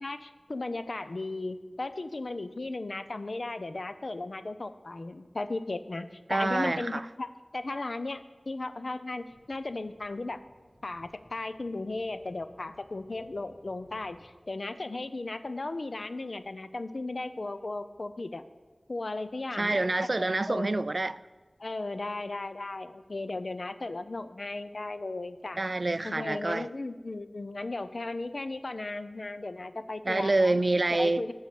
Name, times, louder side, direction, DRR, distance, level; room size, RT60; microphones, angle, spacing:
voice 1, 0.0-10.4 10.8-18.4 18.9-20.8 21.6-25.6 26.0-30.6 30.9-31.3, left 2 dB, 70° left, 0.6 m, -36 dB
voice 2, 6.3-7.1 19.6-21.2 25.6-26.7 30.1-31.2, right 2 dB, 60° right, 0.3 m, -27 dB
Fixed-wing aircraft airplane, 9.2-14.2, left 1 dB, 55° left, 2.8 m, -59 dB
11.5 x 6.4 x 7.5 m
wide cardioid pair, 40°, 0 cm